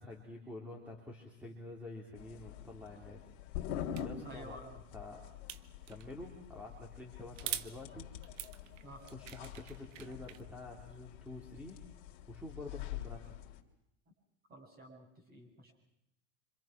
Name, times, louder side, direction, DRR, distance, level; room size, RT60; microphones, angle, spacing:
voice 1, 0.0-3.2 4.0-4.6 4.9-5.2 5.9-8.1 9.1-11.8 12.3-13.4, left 2 dB, 5° right, 0 dB, 3.6 m, -48 dB
sound 1, 2.2-13.6, left 10 dB, 55° left, 3.1 m, -46 dB
sound 2, 3.9-4.1 5.5-6.1 7.4-7.7 8.2-10.4, right 12 dB, 70° right, 1.3 m, -43 dB
voice 2, 4.2-4.8 8.8-9.0 14.5-15.7, right 1 dB, 25° right, 2 dB, 7.5 m, -51 dB
26.5 x 26.5 x 6.1 m, 0.78 s
supercardioid pair, 135°, 38 cm